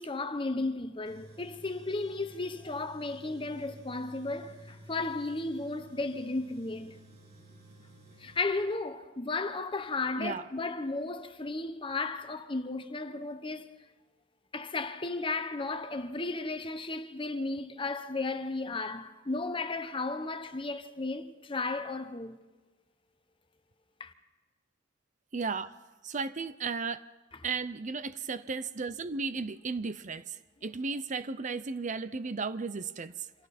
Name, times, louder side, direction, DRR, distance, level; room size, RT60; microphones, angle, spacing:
voice 1, 0.0-7.0 8.2-13.7 14.5-22.4 24.0-24.1, left 3 dB, 25° left, 1.1 m, -34 dB
Tools, 1.1-8.4, right 1 dB, 55° right, 3.8 m, -53 dB
voice 2, 25.3-25.7 26.0-27.0 27.4-33.3, right 4 dB, 40° right, 0.7 m, -35 dB
29.5 x 26.5 x 4.3 m
head